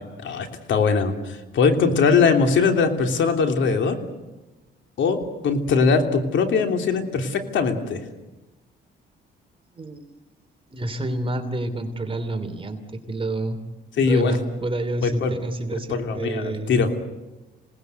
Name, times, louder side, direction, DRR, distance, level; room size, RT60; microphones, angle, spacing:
voice 1, 0.0-4.0 5.0-8.0 14.0-14.4 15.0-15.4 15.9-16.9, left 5 dB, 70° left, 5 dB, 3.2 m, -21 dB
voice 2, 9.8-10.1 10.7-13.6 14.0-16.7, right 2 dB, 25° right, 7 dB, 2.9 m, -29 dB
27.0 x 19.0 x 8.1 m, 1.1 s
cardioid pair, 90°, 20 cm